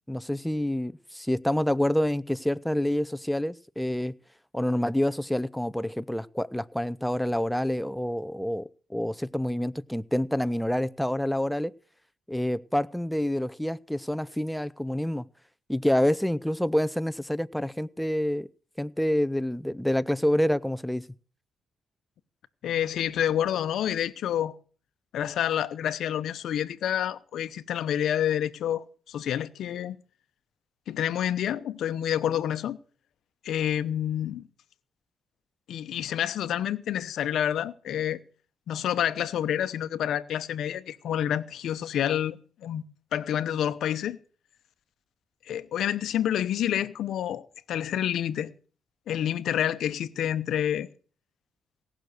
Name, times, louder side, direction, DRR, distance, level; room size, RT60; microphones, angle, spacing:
voice 1, 0.1-4.1 4.5-11.7 12.3-15.3 15.7-18.5 18.8-21.1, left 1 dB, 5° left, 0.5 m, -27 dB
voice 2, 22.6-24.6 25.1-30.0 30.9-32.8 33.4-34.5 35.7-38.2 38.7-42.8 43.1-44.2 45.5-48.5 49.1-50.9, left 10 dB, 75° left, 0.8 m, -28 dB
18.0 x 6.1 x 6.6 m
cardioid pair, 90°, 0 cm